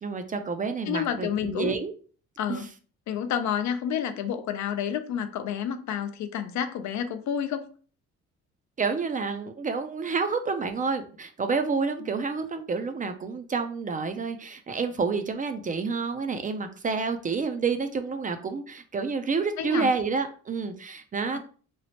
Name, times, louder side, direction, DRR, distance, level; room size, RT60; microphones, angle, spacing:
voice 1, 0.0-1.9 2.5-2.7 8.8-21.4, right 4 dB, 30° right, 0.3 m, -29 dB
voice 2, 0.9-1.8 2.4-2.7 3.1-7.7 19.6-19.9 21.3-21.4, left 8 dB, 70° left, 0.5 m, -29 dB
3.0 x 2.0 x 2.8 m
cardioid pair, 90°, 30 cm